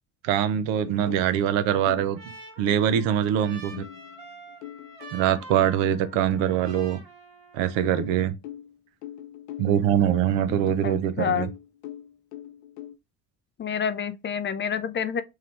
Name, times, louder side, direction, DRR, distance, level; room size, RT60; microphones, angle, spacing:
voice 1, 0.2-2.2 2.6-3.8 5.1-7.0 7.5-8.3 9.6-11.5, right 10 dB, 65° right, 0.8 m, -23 dB
sound 1, 0.8-2.2 2.7-6.5 8.0-10.9 11.4-13.0, left 12 dB, 70° left, 0.7 m, -42 dB
Trumpet, 1.3-8.1, right 2 dB, 85° right, 1.9 m, -47 dB
voice 2, 10.8-11.5 13.6-15.2, left 7 dB, 25° left, 0.4 m, -28 dB
3.7 x 3.1 x 3.3 m
hypercardioid pair, 60°, 48 cm